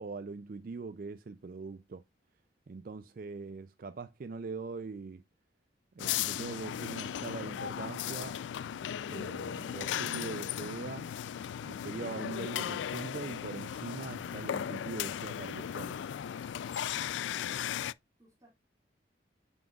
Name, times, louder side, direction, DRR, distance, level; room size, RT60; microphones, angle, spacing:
voice 1, 0.0-2.0 2.7-5.2 5.9-8.4 9.1-11.1 11.6-16.0, right 4 dB, 50° right, 0.4 m, -42 dB
sound 1, 6.0-17.9, left 9 dB, 80° left, 0.3 m, -36 dB
voice 2, 17.1-18.5, equal, 20° right, 2.2 m, -61 dB
9.0 x 5.9 x 2.3 m
head